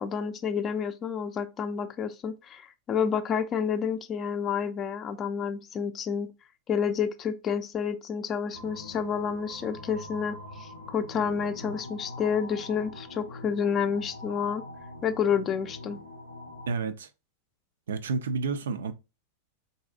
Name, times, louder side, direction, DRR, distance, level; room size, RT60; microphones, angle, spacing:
voice 1, 0.0-6.3 6.7-14.6 15.0-16.0, left 7 dB, 30° left, 0.4 m, -29 dB
sound 1, 8.5-16.7, left 1 dB, 85° right, 0.7 m, -43 dB
voice 2, 16.7-17.1 17.9-18.9, right 4 dB, 65° right, 0.4 m, -30 dB
3.9 x 2.6 x 2.4 m
figure-of-eight pair, 90°, 0 cm